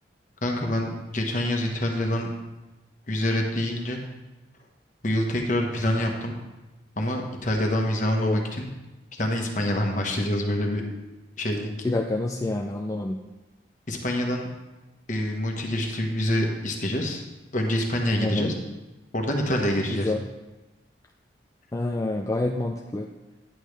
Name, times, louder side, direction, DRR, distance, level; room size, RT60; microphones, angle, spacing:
voice 1, 0.4-2.3 3.1-4.0 5.0-6.4 7.0-8.7 9.1-10.8 11.4-11.7 13.9-14.5 15.1-17.2 17.5-18.5 19.1-20.1, left 1 dB, 40° left, 2 dB, 1.2 m, -26 dB
voice 2, 8.2-8.5 11.8-13.2 18.2-18.6 19.9-20.2 21.7-23.1, left 2 dB, 15° left, 2 dB, 0.3 m, -27 dB
10.0 x 8.7 x 3.3 m, 1.1 s
head